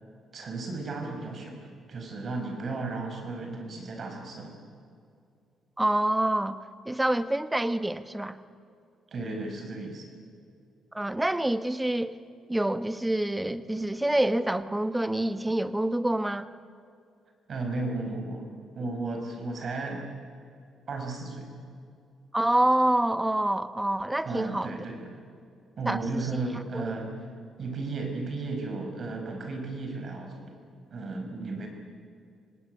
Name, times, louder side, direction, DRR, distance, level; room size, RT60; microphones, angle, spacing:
voice 1, 0.3-4.6 9.1-10.1 17.5-18.5 18.7-20.1 20.9-21.5 24.2-25.2 25.8-27.3 27.6-30.5 30.9-31.7, right 3 dB, 50° right, 4 dB, 5.7 m, -34 dB
voice 2, 5.8-6.6 6.9-8.4 10.9-12.2 12.5-16.5 22.3-24.8 25.9-26.2 26.7-26.8, right 1 dB, 10° right, 12 dB, 1.2 m, -26 dB
25.5 x 18.5 x 9.5 m, 2.4 s
cardioid pair, 90°, 0 cm